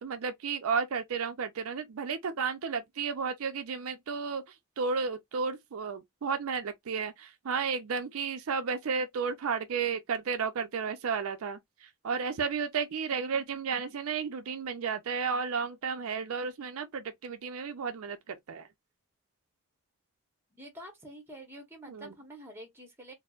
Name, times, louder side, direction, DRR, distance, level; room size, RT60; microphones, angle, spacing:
voice 1, 0.0-4.4 4.8-18.7 21.9-22.1, right 5 dB, 75° right, 0.4 m, -33 dB
voice 2, 20.5-23.1, equal, 10° right, 0.9 m, -47 dB
4.2 x 2.0 x 2.4 m
head